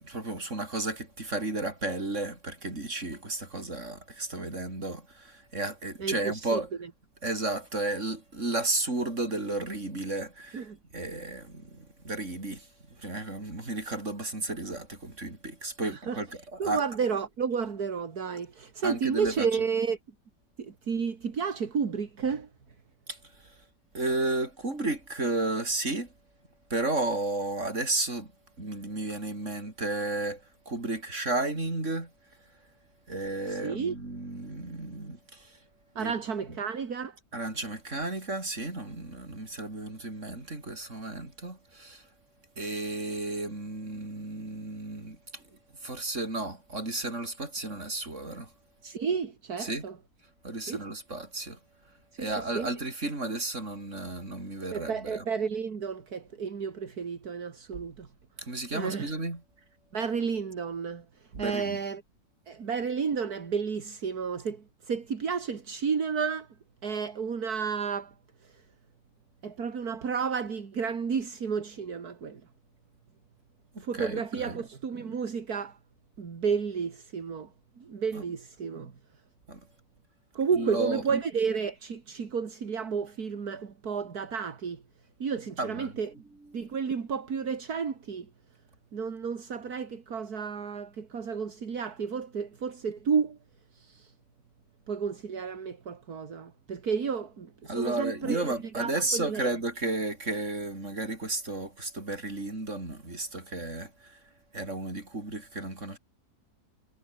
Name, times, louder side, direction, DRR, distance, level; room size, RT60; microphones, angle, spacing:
voice 1, 0.0-6.7 7.2-16.8 18.8-19.5 23.1-23.2 23.9-26.1 26.7-28.3 28.6-32.1 33.1-35.6 36.0-36.1 37.3-42.1 42.6-45.4 45.8-48.5 49.6-49.8 50.4-51.6 52.2-55.2 58.4-59.4 61.3-61.8 73.7-74.6 78.1-78.2 79.5-79.6 80.6-81.0 85.6-86.0 86.6-86.7 97.7-104.2 104.5-106.0, right 2 dB, 50° right, 5.6 m, -33 dB
voice 2, 6.0-6.6 10.5-10.8 15.8-16.2 16.6-20.0 20.6-22.5 33.5-33.9 36.0-37.2 48.8-50.0 50.7-50.8 52.1-52.7 54.7-58.1 58.7-59.2 59.9-61.0 61.4-62.0 62.5-66.5 66.8-68.1 68.4-68.6 69.4-72.4 73.8-75.8 76.2-77.5 77.8-78.9 80.3-84.8 85.2-86.2 86.5-88.3 88.9-93.4 93.7-94.1 94.9-99.5, right 6 dB, 70° right, 2.5 m, -32 dB
omnidirectional pair, 1.7 m